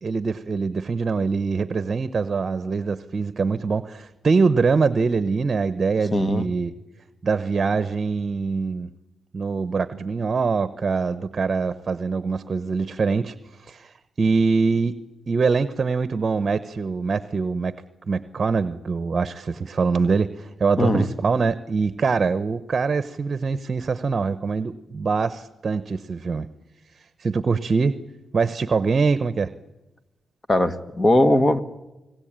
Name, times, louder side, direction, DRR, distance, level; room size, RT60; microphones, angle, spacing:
voice 1, 0.0-6.7 7.2-8.9 9.3-15.0 15.3-17.7 18.1-26.5 27.0-28.0 28.3-29.5, right 4 dB, 40° right, 1.0 m, -23 dB
voice 2, 6.1-6.4 20.8-21.1 30.5-31.6, left 1 dB, 25° left, 1.6 m, -19 dB
29.5 x 19.5 x 8.9 m
cardioid pair, 80°, 0 cm